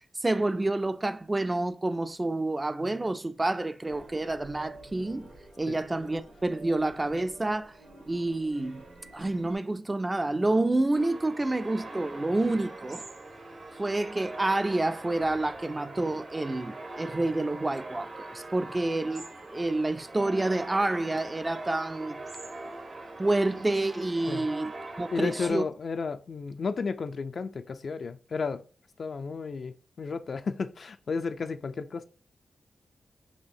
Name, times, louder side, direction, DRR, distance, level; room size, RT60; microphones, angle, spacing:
voice 1, 0.2-5.3 5.6-7.7 8.1-8.8 9.1-13.1 13.8-22.2 23.2-24.7 25.0-25.6, right 2 dB, 30° right, 0.3 m, -28 dB
sound 1, 3.9-9.6, right 2 dB, 85° right, 1.8 m, -50 dB
sound 2, 10.9-25.5, right 2 dB, 55° right, 0.8 m, -42 dB
voice 2, 25.1-28.6 29.0-32.0, left 4 dB, 65° left, 0.3 m, -33 dB
4.3 x 2.8 x 2.6 m
cardioid pair, 45°, 0 cm